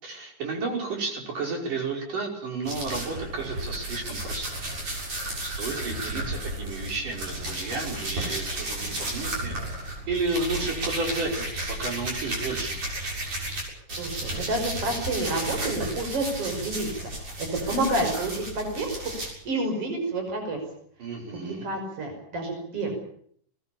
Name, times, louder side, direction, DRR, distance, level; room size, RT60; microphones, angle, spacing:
voice 1, 0.0-4.6 5.4-9.6 9.8-12.9 21.0-21.7, right 3 dB, 80° right, 1 dB, 7.1 m, -32 dB
sound 1, 2.6-13.6 13.9-19.3, right 1 dB, 60° right, 8.6 m, -33 dB
voice 2, 13.9-16.9 17.2-19.1 19.4-20.6 21.3-23.0, right 2 dB, 45° right, 3 dB, 6.7 m, -29 dB
21.0 x 20.5 x 8.7 m, 0.63 s
omnidirectional pair, 3.7 m